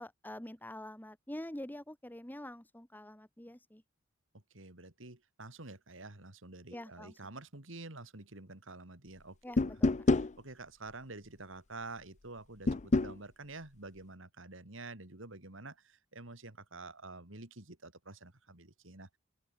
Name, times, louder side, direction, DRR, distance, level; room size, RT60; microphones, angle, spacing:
voice 1, 0.0-3.8 6.7-7.1 9.4-9.9, left 1 dB, 10° left, 1.7 m, -46 dB
voice 2, 4.3-9.6 10.1-19.2, right 3 dB, 70° right, 3.2 m, -49 dB
sound 1, 9.6-10.3 12.7-13.2, left 3 dB, 35° left, 0.6 m, -27 dB
open air
head